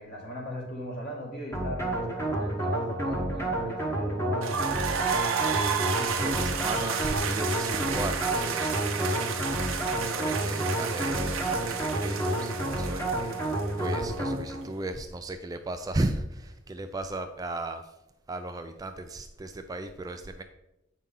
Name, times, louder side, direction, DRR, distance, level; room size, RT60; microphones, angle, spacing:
voice 1, 0.0-4.8, equal, 50° left, -2 dB, 2.1 m, -38 dB
sound 1, 1.5-14.7, right 1 dB, 10° left, 1.0 m, -30 dB
sound 2, 4.4-14.2, right 6 dB, 75° right, 0.8 m, -32 dB
voice 2, 6.0-9.3 10.0-13.1 13.4-13.5 13.8-17.8 18.3-20.4, right 2 dB, 20° right, 7 dB, 0.3 m, -35 dB
8.2 x 5.4 x 3.8 m, 0.89 s
head